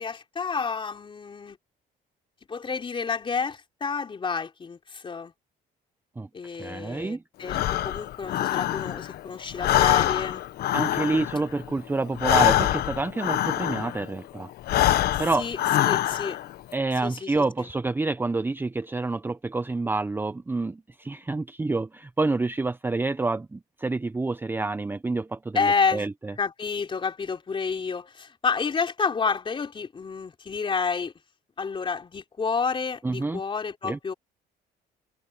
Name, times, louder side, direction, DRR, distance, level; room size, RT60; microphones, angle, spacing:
voice 1, 0.0-1.6 2.5-5.3 6.3-7.6 7.8-10.4 15.1-15.6 15.8-16.4 17.0-17.3 17.6-17.7 25.5-26.1 26.4-31.1 31.6-34.1, left 5 dB, 30° left, 3.6 m, -29 dB
voice 2, 6.6-7.2 10.7-14.5 15.2-15.5 16.7-26.3 33.0-33.4 33.8-34.0, right 3 dB, 10° right, 0.6 m, -28 dB
Breathing, 7.4-9.2 9.5-14.1 14.6-16.5, left 13 dB, 70° left, 1.1 m, -24 dB
cardioid pair, 110°, 17 cm